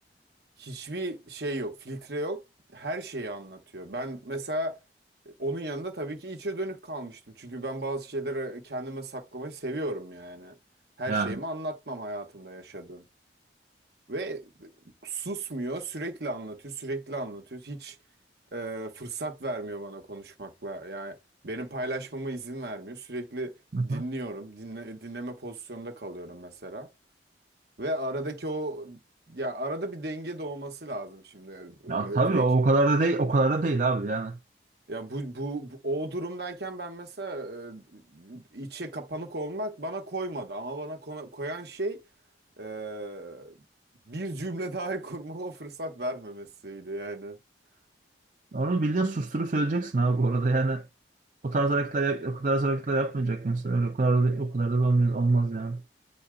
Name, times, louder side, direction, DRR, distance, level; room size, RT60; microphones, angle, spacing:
voice 1, 0.6-2.4 2.7-4.8 5.2-10.6 11.0-13.1 14.1-14.7 15.0-18.0 18.5-21.2 21.4-23.5 23.8-26.9 27.8-29.0 29.3-32.4 34.9-42.0 42.6-43.5 44.1-47.4, right 1 dB, 65° right, 1.1 m, -35 dB
voice 2, 11.1-11.4 23.7-24.0 31.9-34.4 48.5-50.8 51.4-55.8, right 3 dB, 45° right, 0.5 m, -25 dB
7.7 x 4.1 x 3.7 m
head